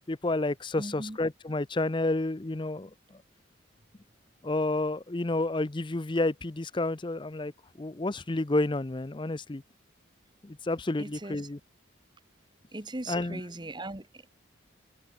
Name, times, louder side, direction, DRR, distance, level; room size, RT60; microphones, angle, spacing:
voice 1, 0.1-2.9 4.4-7.5 7.8-9.6 10.4-11.6 13.1-13.4, left 2 dB, 25° left, 0.6 m, -30 dB
voice 2, 0.8-1.2 11.0-11.4 12.7-14.2, right 2 dB, 25° right, 1.3 m, -39 dB
head